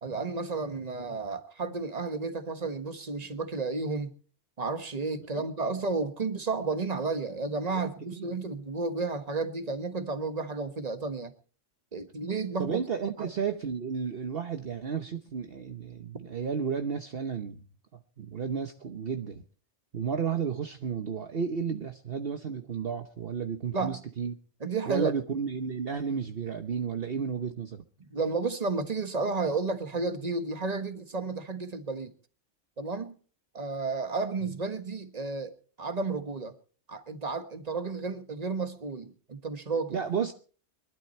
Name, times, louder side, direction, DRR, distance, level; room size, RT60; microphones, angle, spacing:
voice 1, 0.0-4.1 4.6-11.3 11.9-12.8 13.2-13.3 23.7-24.0 24.6-25.1 28.0-32.1 32.8-33.1 33.5-36.5 36.9-40.0, right 3 dB, 35° right, 1.5 m, -32 dB
voice 2, 12.6-17.6 17.9-19.4 19.9-24.3 24.9-27.8 39.9-40.3, right 6 dB, 55° right, 1.2 m, -32 dB
23.0 x 12.0 x 4.3 m
omnidirectional pair, 1.2 m